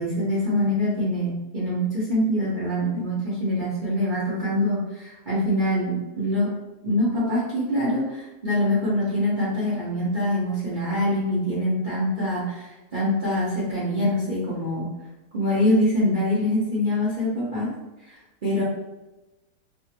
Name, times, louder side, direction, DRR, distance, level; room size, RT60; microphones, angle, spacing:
voice 1, 0.0-6.5 6.8-14.8 15.3-17.7 18.1-18.6, left 1 dB, 40° right, -9 dB, 0.7 m, -24 dB
3.6 x 2.1 x 2.8 m, 1.1 s
omnidirectional pair, 2.0 m